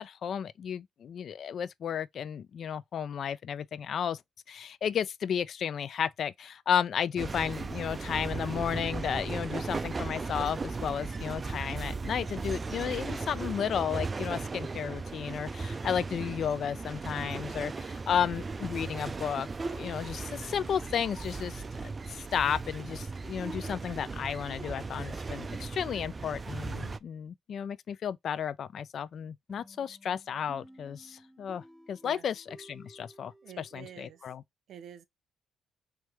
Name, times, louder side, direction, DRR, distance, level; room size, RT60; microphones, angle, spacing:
voice 1, 0.0-4.2 4.5-21.6 22.1-34.4, left 8 dB, 60° left, 0.3 m, -33 dB
sound 1, 7.2-27.0, right 4 dB, 30° right, 0.3 m, -37 dB
sound 2, 29.5-34.2, right 1 dB, 5° left, 0.6 m, -55 dB
voice 2, 33.4-34.3 34.7-35.0, right 9 dB, 70° right, 0.6 m, -48 dB
3.2 x 3.0 x 3.4 m
cardioid pair, 90°, 0 cm